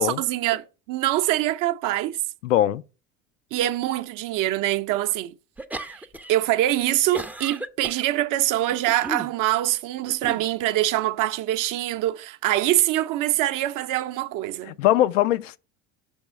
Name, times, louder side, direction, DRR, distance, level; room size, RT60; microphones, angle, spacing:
voice 1, 0.0-2.2 3.5-5.3 6.3-14.8, right 14 dB, 55° right, 0.6 m, -24 dB
voice 2, 2.4-2.8 14.8-15.6, left 12 dB, 85° left, 0.5 m, -21 dB
sound 1, 5.6-6.4 6.7-8.0 8.7-9.3 10.1-10.5, right 1 dB, 5° right, 0.4 m, -35 dB
6.1 x 3.5 x 5.3 m
hypercardioid pair, 70°, 37 cm